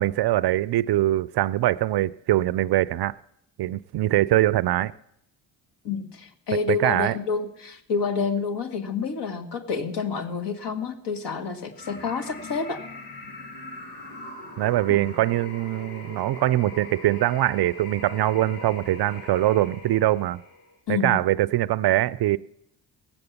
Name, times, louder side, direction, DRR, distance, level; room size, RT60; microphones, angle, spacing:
voice 1, 0.0-3.2 3.6-4.9 6.7-7.2 14.6-20.4 20.9-22.4, right 15 dB, 55° right, 0.5 m, -23 dB
voice 2, 5.8-12.8 15.0-15.1 20.9-21.2, left 5 dB, 55° left, 2.0 m, -28 dB
sound 1, 11.7-20.8, left 2 dB, 85° left, 2.3 m, -41 dB
18.0 x 7.9 x 7.1 m
supercardioid pair, 55°, 48 cm